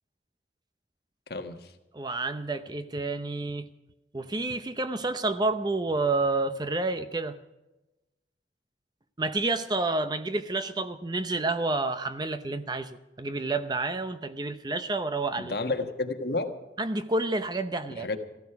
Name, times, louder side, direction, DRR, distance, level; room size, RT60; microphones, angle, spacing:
voice 1, 1.3-1.7 15.4-16.5 17.9-18.2, left 3 dB, 60° left, 6 dB, 1.4 m, -31 dB
voice 2, 1.9-3.7 4.1-7.4 9.2-15.5 16.8-18.1, right 2 dB, 25° right, 10 dB, 0.6 m, -29 dB
15.0 x 13.5 x 5.8 m, 1.0 s
head